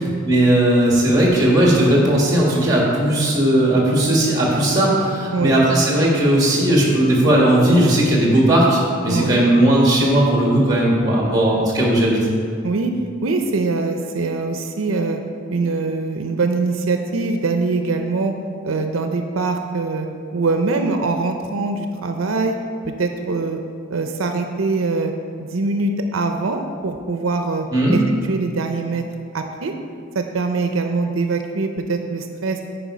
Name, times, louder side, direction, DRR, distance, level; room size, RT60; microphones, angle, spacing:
voice 1, 0.0-12.3 27.7-28.0, right 1 dB, 20° right, -3 dB, 1.8 m, -17 dB
voice 2, 9.1-9.4 12.6-12.9 13.2-15.2 15.5-18.3 18.6-20.1 20.3-22.6 22.8-23.6 23.9-25.1 25.4-28.0 28.3-29.0 29.3-29.7 30.1-32.6, right 3 dB, 90° right, 5 dB, 0.6 m, -23 dB
9.1 x 4.9 x 4.9 m, 2.3 s
head